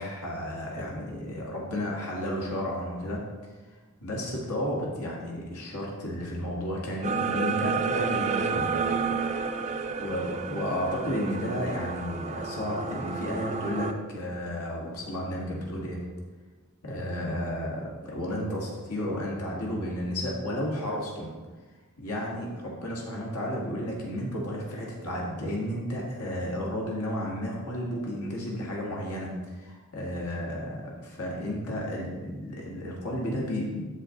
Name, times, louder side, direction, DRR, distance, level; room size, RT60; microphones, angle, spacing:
voice 1, 0.0-3.2 4.0-8.7 9.7-16.0 16.8-21.3 22.0-33.9, equal, 80° left, -2 dB, 1.9 m, -32 dB
sound 1, 7.0-13.9, right 5 dB, 30° right, 0.4 m, -30 dB
13.0 x 4.4 x 3.8 m, 1.3 s
head